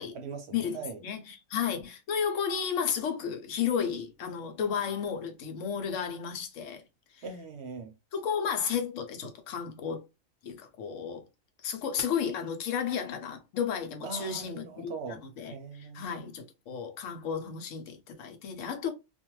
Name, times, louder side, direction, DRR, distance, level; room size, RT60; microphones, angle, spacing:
voice 1, 0.0-1.0 7.2-7.9 14.0-15.2 15.5-16.3, right 4 dB, 65° right, 0.7 m, -41 dB
voice 2, 0.5-6.8 7.1-7.2 8.1-10.0 10.4-11.3 11.6-15.5 15.8-18.9, left 7 dB, 70° left, 1.0 m, -33 dB
2.5 x 2.2 x 3.0 m
omnidirectional pair, 1.4 m